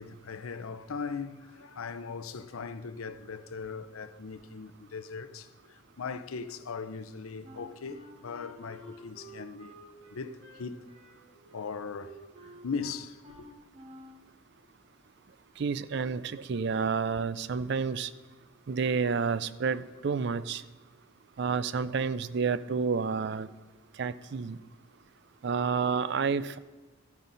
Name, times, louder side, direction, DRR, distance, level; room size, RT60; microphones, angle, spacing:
voice 1, 0.0-9.8 10.1-10.9 11.5-13.5, left 5 dB, 85° left, 0.6 m, -39 dB
Wind instrument woodwind instrument, 7.4-14.2, right 1 dB, 30° right, 1.9 m, -51 dB
voice 2, 15.6-18.1 18.7-20.6 21.4-23.5 24.0-24.6 25.4-26.6, right 5 dB, 55° right, 0.4 m, -30 dB
13.0 x 9.7 x 3.9 m
head